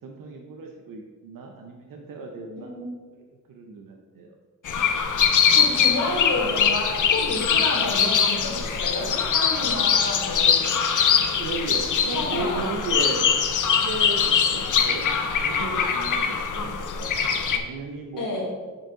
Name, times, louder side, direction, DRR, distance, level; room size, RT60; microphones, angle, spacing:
voice 1, 0.0-2.7 3.3-4.4 11.4-13.2 13.7-15.1 15.4-17.1 17.5-18.3, right 3 dB, 90° right, 2 dB, 0.7 m, -35 dB
voice 2, 2.6-2.9 5.5-10.7 12.1-12.7 18.2-18.5, left 2 dB, 85° left, -5 dB, 1.7 m, -30 dB
sound 1, 4.6-17.6, left 7 dB, 70° left, 0.7 m, -22 dB
7.5 x 4.8 x 3.7 m, 1.4 s
cardioid pair, 60°, 32 cm